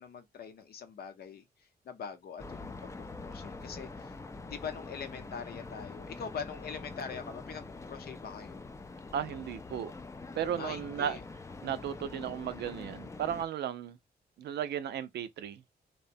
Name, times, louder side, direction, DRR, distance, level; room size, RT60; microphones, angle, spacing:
voice 1, 0.0-4.2 4.5-8.6 10.6-11.2, left 6 dB, 65° left, 0.7 m, -43 dB
sound 1, 2.4-13.5, left 3 dB, 15° left, 0.4 m, -45 dB
voice 2, 9.1-9.9 10.4-11.2 11.6-14.0 14.4-15.6, right 9 dB, 85° right, 0.5 m, -35 dB
2.9 x 2.1 x 2.5 m
cardioid pair, 90°, 17 cm